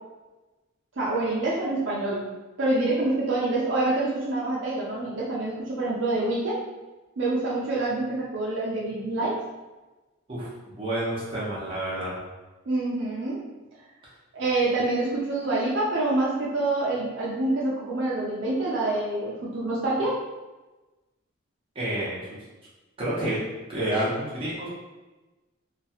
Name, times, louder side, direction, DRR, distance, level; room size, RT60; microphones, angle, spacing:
voice 1, 1.0-2.2 2.6-6.6 7.2-9.4 12.7-13.4 14.3-20.2, right 2 dB, 60° right, -5 dB, 0.5 m, -26 dB
voice 2, 10.3-12.2 21.7-22.4 23.0-23.4 23.7-24.7, right 1 dB, 25° right, -8 dB, 0.9 m, -29 dB
2.9 x 2.3 x 2.8 m, 1.2 s
head